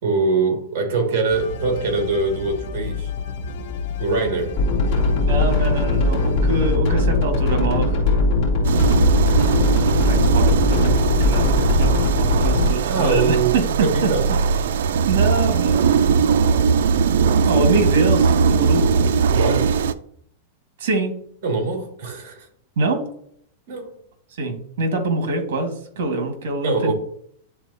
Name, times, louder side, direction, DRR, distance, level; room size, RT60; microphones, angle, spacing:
voice 1, 0.0-3.1 4.0-4.6 12.9-13.5 13.8-14.3 17.2-17.4 19.3-19.9 21.4-22.5 23.7-23.9 26.6-26.9, right 3 dB, 50° right, 2.1 m, -23 dB
sound 1, 1.3-6.8, left 3 dB, 55° left, 0.7 m, -31 dB
sound 2, 4.6-12.7, left 2 dB, 40° left, 2.5 m, -19 dB
voice 2, 5.2-8.0 10.0-13.6 15.1-16.7 17.0-17.2 17.5-19.1 20.8-21.1 22.8-23.0 24.4-26.9, right 2 dB, 70° right, 1.8 m, -25 dB
sound 3, 8.6-19.9, right 6 dB, 85° right, 0.4 m, -19 dB
9.9 x 4.0 x 2.8 m
supercardioid pair, 170°, 0 cm